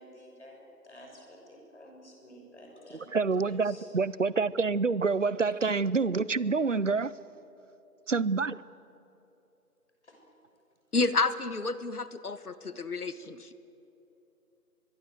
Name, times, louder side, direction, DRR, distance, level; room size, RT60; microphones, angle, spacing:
voice 1, 0.0-3.2 3.4-3.9 10.0-10.2, equal, 45° left, 6.4 m, -51 dB
voice 2, 3.1-7.1 8.1-8.6, right 4 dB, 55° right, 0.6 m, -27 dB
voice 3, 10.9-13.5, left 3 dB, 70° left, 1.6 m, -30 dB
23.5 x 22.5 x 7.9 m
figure-of-eight pair, 180°, 47 cm